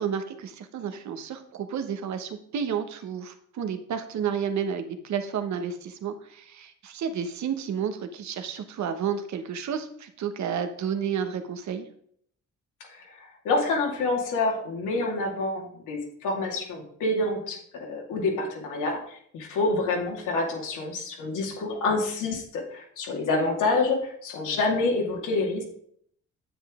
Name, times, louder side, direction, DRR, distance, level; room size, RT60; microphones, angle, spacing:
voice 1, 0.0-11.9, right 7 dB, 65° right, 8 dB, 1.2 m, -31 dB
voice 2, 12.9-25.6, left 3 dB, 85° left, 0 dB, 2.3 m, -27 dB
9.1 x 7.9 x 3.7 m, 0.66 s
cardioid pair, 90°, 30 cm